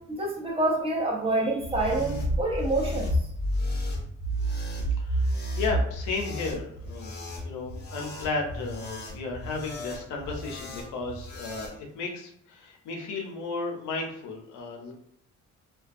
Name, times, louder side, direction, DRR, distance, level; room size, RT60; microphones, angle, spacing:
voice 1, 0.0-3.1, right 2 dB, 20° right, -2 dB, 0.8 m, -27 dB
sound 1, 1.6-11.7, equal, 35° left, 0.7 m, -31 dB
voice 2, 5.6-7.2 7.4-14.9, left 3 dB, 85° left, 1 dB, 0.7 m, -34 dB
2.2 x 2.2 x 2.5 m, 0.70 s
cardioid pair, 90°, 30 cm